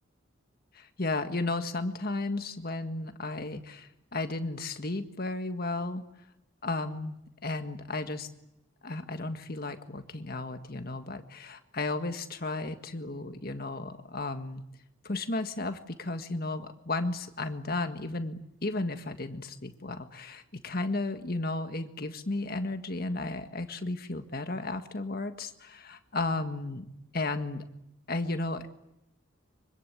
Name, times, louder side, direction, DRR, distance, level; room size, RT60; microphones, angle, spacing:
voice 1, 0.7-6.0 6.6-8.3 8.8-14.6 15.0-26.9 27.1-27.6 28.1-28.7, left 2 dB, 45° left, 8 dB, 1.7 m, -34 dB
25.0 x 24.0 x 8.4 m, 0.85 s
head